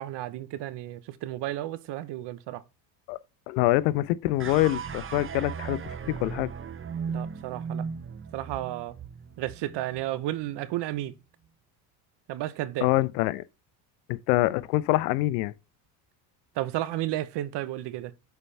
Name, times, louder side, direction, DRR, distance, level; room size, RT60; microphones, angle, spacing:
voice 1, 0.0-2.6 7.1-7.8 8.3-8.9 9.4-11.1 12.3-12.9 16.6-18.1, right 14 dB, 60° right, 1.0 m, -32 dB
voice 2, 3.5-6.5 12.8-13.4 14.1-15.5, left 17 dB, 80° left, 0.6 m, -25 dB
sound 1, 4.4-10.8, right 6 dB, 25° right, 0.8 m, -37 dB
6.8 x 4.6 x 3.3 m
supercardioid pair, 85°, 47 cm